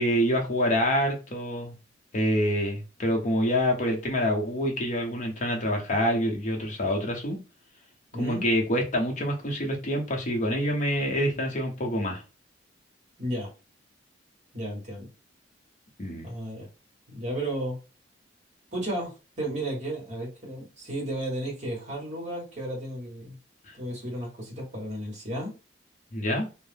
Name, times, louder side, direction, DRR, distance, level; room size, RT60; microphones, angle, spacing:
voice 1, 0.0-1.7 2.1-7.4 8.2-12.2 16.0-16.3 26.1-26.5, equal, 40° left, 0.7 m, -26 dB
voice 2, 8.1-8.4 13.2-13.5 14.5-15.1 16.2-16.7 17.1-17.8 18.7-23.4 23.7-25.5, right 1 dB, 40° right, 1.3 m, -33 dB
2.7 x 2.0 x 3.3 m
head